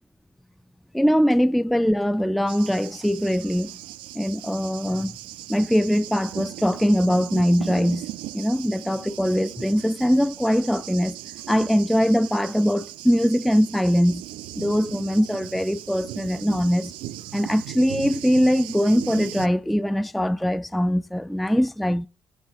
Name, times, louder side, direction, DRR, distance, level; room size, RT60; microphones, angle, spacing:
voice 1, 0.9-3.7 4.1-5.2 5.5-8.0 8.3-11.2 11.5-14.2 14.6-16.9 17.3-22.1, equal, ahead, 0.4 m, -22 dB
Thunder, 2.5-19.5, right 15 dB, 75° right, 0.5 m, -38 dB
8.0 x 7.3 x 4.9 m
hypercardioid pair, 55°, 9 cm